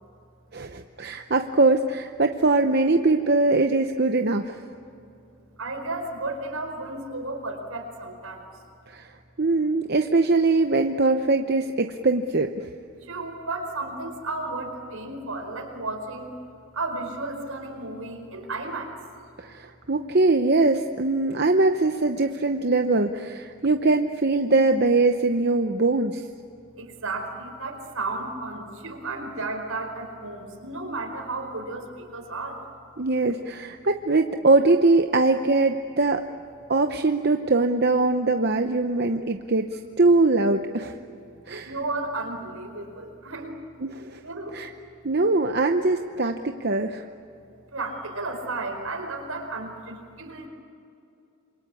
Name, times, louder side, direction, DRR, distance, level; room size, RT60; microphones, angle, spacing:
voice 1, 0.5-4.6 8.9-9.1 9.4-12.7 19.4-26.2 33.0-36.2 36.7-41.0 41.5-41.7 43.8-44.2 44.5-44.7 45.0-47.0, right 3 dB, 45° right, 6 dB, 0.8 m, -22 dB
voice 2, 5.6-8.4 13.1-16.3 16.7-18.9 26.8-31.8 32.1-32.6 41.6-43.5 44.2-44.6 47.7-50.5, right 2 dB, 75° right, 3 dB, 4.8 m, -33 dB
27.0 x 24.0 x 8.5 m, 2.6 s
head